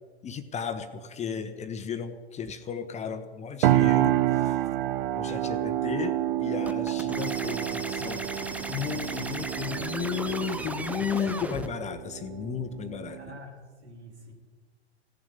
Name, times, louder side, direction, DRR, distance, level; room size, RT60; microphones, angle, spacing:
voice 1, 0.2-4.6 5.2-8.2 8.7-13.2, left 7 dB, 20° left, 9 dB, 0.9 m, -34 dB
sound 1, 3.6-13.4, right 14 dB, 55° right, 0.7 m, -28 dB
sound 2, 6.7-11.7, right 2 dB, 5° right, 0.7 m, -36 dB
voice 2, 13.0-14.3, left 1 dB, 75° right, -1 dB, 4.6 m, -47 dB
16.0 x 7.3 x 9.7 m, 1.5 s
figure-of-eight pair, 95°, 33 cm